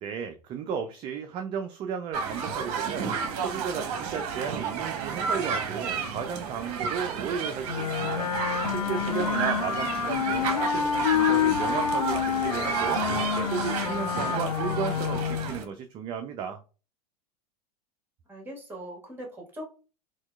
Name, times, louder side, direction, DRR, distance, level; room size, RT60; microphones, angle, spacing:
voice 1, 0.0-3.1 3.4-16.6, right 7 dB, 25° right, 0.3 m, -34 dB
sound 1, 2.1-15.7, right 6 dB, 50° right, 0.7 m, -32 dB
Wind instrument woodwind instrument, 7.7-15.5, left 8 dB, 75° left, 0.5 m, -28 dB
voice 2, 10.1-10.7 18.3-19.6, right 1 dB, 10° right, 1.4 m, -42 dB
4.3 x 2.2 x 2.2 m
figure-of-eight pair, 85°, 20 cm